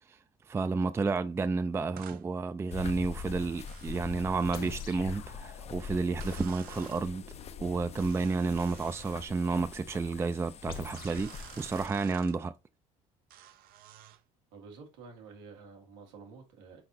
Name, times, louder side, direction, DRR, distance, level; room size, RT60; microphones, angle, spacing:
voice 1, 0.5-7.2 7.6-12.5, right 4 dB, 15° right, 0.3 m, -31 dB
sound 1, 2.0-2.2 3.6-4.9 6.2-7.1 8.0-9.3 11.0-12.4 13.3-14.2, right 11 dB, 70° right, 0.5 m, -52 dB
sound 2, 2.7-11.9, left 6 dB, 40° left, 0.5 m, -43 dB
sound 3, 4.5-8.8 10.7-11.4, left 7 dB, 75° left, 1.0 m, -48 dB
voice 2, 14.5-16.8, right 4 dB, 90° right, 1.5 m, -50 dB
4.6 x 3.9 x 2.6 m
supercardioid pair, 80°, 16 cm